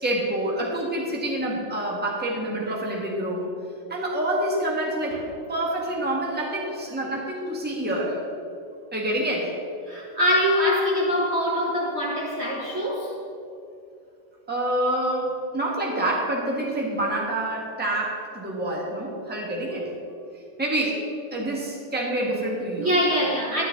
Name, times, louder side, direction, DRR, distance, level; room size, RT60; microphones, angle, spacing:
voice 1, 0.0-3.5 3.9-5.2 5.5-8.2 8.9-9.5 14.5-19.9 20.6-21.0 21.3-23.0, right 1 dB, 5° right, -3 dB, 1.6 m, -27 dB
voice 2, 9.9-13.2 22.8-23.6, equal, 35° right, -4 dB, 1.6 m, -23 dB
12.5 x 11.0 x 4.0 m, 2.6 s
omnidirectional pair, 2.1 m